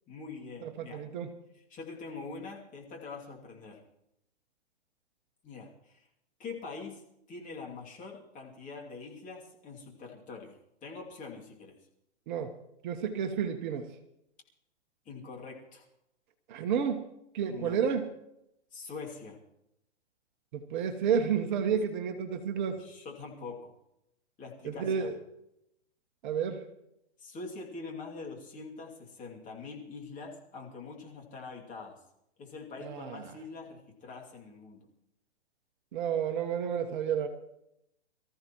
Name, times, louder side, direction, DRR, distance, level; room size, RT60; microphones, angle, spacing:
voice 1, 0.1-1.0 1.5-3.8 5.4-6.1 6.4-7.0 7.3-11.8 15.0-15.9 17.4-17.8 18.7-19.4 22.8-23.7 24.4-25.1 27.2-32.0 32.4-34.8, left 4 dB, 20° left, -1 dB, 2.6 m, -44 dB
voice 2, 0.6-1.3 12.3-12.5 12.8-13.9 16.5-17.0 17.3-18.1 20.5-22.8 24.6-25.2 26.2-26.6 32.8-33.3 35.9-37.3, right 7 dB, 45° right, 7 dB, 1.2 m, -31 dB
24.0 x 14.0 x 3.1 m, 0.82 s
hypercardioid pair, 135°, 35 cm